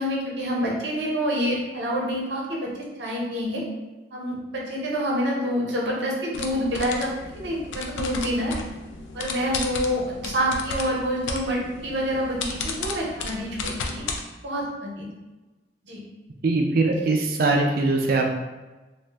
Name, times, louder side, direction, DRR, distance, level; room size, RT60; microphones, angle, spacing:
voice 1, 0.0-2.7 3.0-3.6 4.1-8.6 9.1-14.0 14.4-15.1 15.8-16.0, equal, 70° right, -3 dB, 0.7 m, -27 dB
sound 1, 6.3-14.2, left 3 dB, 85° left, 0.4 m, -34 dB
voice 2, 16.4-18.4, right 3 dB, 50° right, 2 dB, 0.4 m, -21 dB
2.5 x 2.1 x 3.3 m, 1.2 s
head